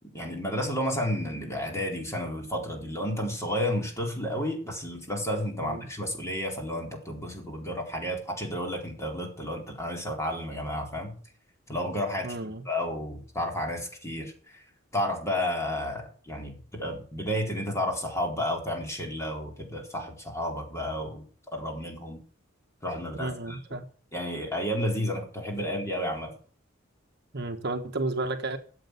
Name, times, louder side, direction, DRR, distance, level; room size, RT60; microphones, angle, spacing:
voice 1, 0.0-11.2 11.7-14.6 14.9-21.2 21.5-22.2 22.8-23.6 24.1-26.3, left 1 dB, 15° left, 4.1 m, -31 dB
voice 2, 12.2-12.6 23.2-23.8 27.3-28.6, right 2 dB, 55° right, 1.3 m, -32 dB
14.0 x 8.0 x 8.2 m
head